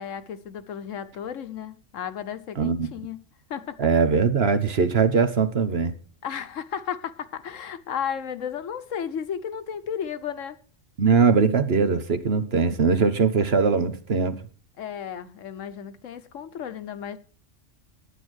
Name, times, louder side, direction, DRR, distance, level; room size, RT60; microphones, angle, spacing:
voice 1, 0.0-3.2 3.5-3.8 6.2-10.6 14.8-17.2, left 8 dB, 75° left, 1.2 m, -34 dB
voice 2, 2.6-2.9 3.8-5.9 11.0-14.4, right 5 dB, 55° right, 1.2 m, -21 dB
9.9 x 9.2 x 6.3 m
omnidirectional pair, 1.3 m